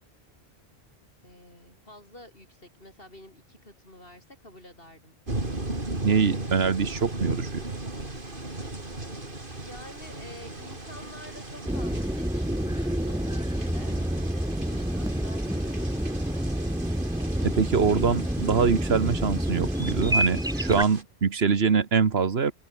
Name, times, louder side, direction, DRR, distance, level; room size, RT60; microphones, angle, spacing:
voice 1, 1.2-5.1 9.6-14.0 14.6-16.0, left 1 dB, 60° left, 8.3 m, -48 dB
sound 1, 5.3-21.0, right 2 dB, 55° right, 4.1 m, -38 dB
voice 2, 6.0-7.6 17.4-22.5, right 5 dB, 75° right, 1.6 m, -24 dB
sound 2, 11.7-20.8, equal, 5° right, 1.1 m, -28 dB
omnidirectional pair, 1.1 m